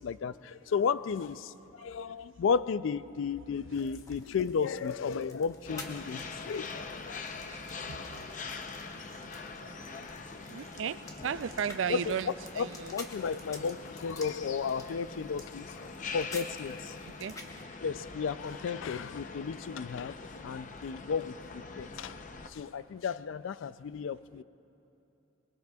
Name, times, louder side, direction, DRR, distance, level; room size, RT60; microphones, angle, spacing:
voice 1, 0.0-6.8 7.0-7.2 11.9-12.2 12.6-15.8 16.1-17.0 17.8-22.2 22.5-24.4, left 6 dB, 75° left, 15 dB, 0.4 m, -33 dB
sound 1, 3.7-17.6, left 2 dB, 15° left, 1.0 m, -51 dB
sound 2, 5.7-22.5, left 4 dB, 40° left, 0.7 m, -43 dB
voice 2, 7.4-8.3 9.0-9.9 10.5-13.0 16.5-16.7 17.2-17.4, right 7 dB, 75° right, 14 dB, 0.4 m, -37 dB
22.5 x 21.5 x 2.3 m, 2.9 s
head